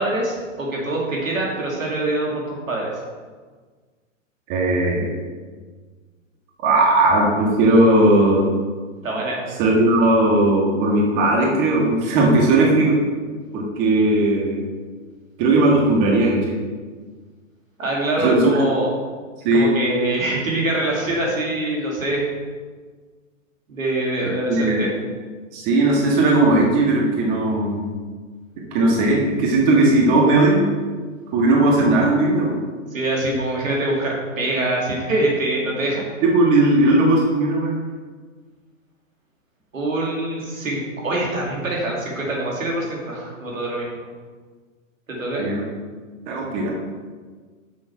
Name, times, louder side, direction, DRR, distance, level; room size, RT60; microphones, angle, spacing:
voice 1, 0.0-3.0 9.0-9.6 17.8-18.9 19.5-22.2 23.7-24.9 32.9-36.1 39.7-44.0 45.1-45.4, right 2 dB, 90° right, -2 dB, 2.5 m, -24 dB
voice 2, 4.5-5.2 6.6-8.5 9.6-13.0 13.5-14.7 15.4-16.6 18.2-18.5 19.4-19.7 24.5-24.9 25.5-27.9 28.7-30.7 31.3-32.6 36.2-37.8 45.4-45.6 46.3-46.7, right 2 dB, 35° right, -2 dB, 1.6 m, -17 dB
6.4 x 6.4 x 4.7 m, 1.5 s
hypercardioid pair, 135°, 39 cm